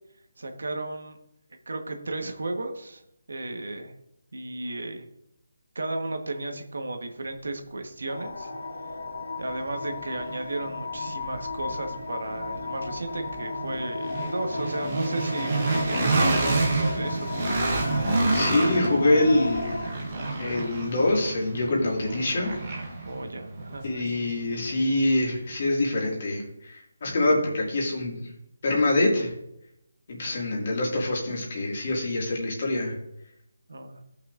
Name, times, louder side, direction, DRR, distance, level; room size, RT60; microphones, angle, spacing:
voice 1, 0.4-1.2 1.7-3.0 3.3-3.9 4.3-5.0 5.7-8.5 9.4-17.4 23.0-23.8 30.3-30.5 33.7-34.0, right 2 dB, 75° right, 5 dB, 1.2 m, -34 dB
sound 1, 8.1-19.9, left 4 dB, 70° left, 0.9 m, -35 dB
sound 2, 8.5-8.6 9.1-25.0, right 2 dB, 20° right, 1.0 m, -29 dB
voice 2, 18.3-19.8 20.3-22.6 23.8-28.2 28.6-29.3 30.1-33.0, left 2 dB, 30° left, -2 dB, 2.0 m, -25 dB
15.0 x 5.7 x 2.5 m, 0.80 s
hypercardioid pair, 180°, 0 cm